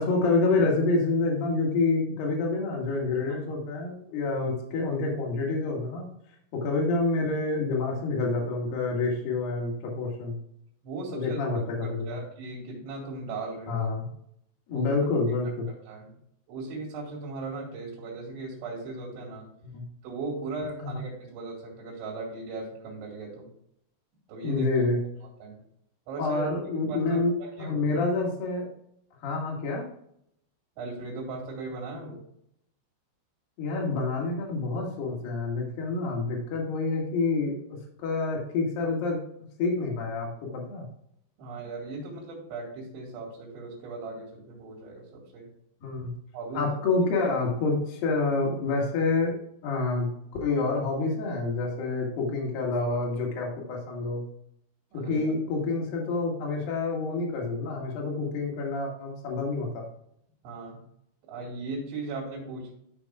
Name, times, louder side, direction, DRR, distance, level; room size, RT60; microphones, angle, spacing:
voice 1, 0.0-6.1 6.5-10.4 11.1-12.2 13.7-14.1 14.7-15.7 19.7-19.9 20.8-21.0 24.4-25.0 26.2-27.3 27.6-28.7 29.2-29.8 33.6-39.2 39.6-40.8 45.8-46.1 46.5-49.4 49.6-50.1 50.4-54.2 54.9-59.8, left 3 dB, 55° left, -1 dB, 3.2 m, -28 dB
voice 2, 10.8-11.4 11.8-13.9 14.7-14.9 15.9-16.2 16.5-19.5 20.0-23.5 24.3-24.9 25.4-25.6 26.1-26.4 26.9-27.8 30.8-32.2 41.4-45.5 46.3-46.7 54.9-55.3 60.4-60.8 61.3-62.7, right 3 dB, 65° right, -4 dB, 4.8 m, -38 dB
13.5 x 5.9 x 2.4 m, 0.74 s
omnidirectional pair, 5.8 m